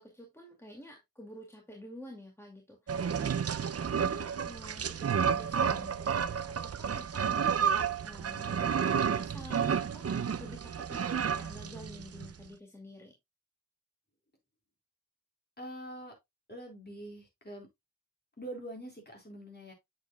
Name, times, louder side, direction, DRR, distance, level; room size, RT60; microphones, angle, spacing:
voice 1, 0.0-3.3 4.0-13.1, left 1 dB, 5° left, 2.1 m, -50 dB
sound 1, 2.9-12.3, right 7 dB, 45° right, 0.4 m, -31 dB
voice 2, 15.6-16.1 16.5-17.7 18.4-19.7, right 1 dB, 25° left, 3.9 m, -44 dB
8.0 x 7.4 x 2.2 m
wide cardioid pair, 90°, 36 cm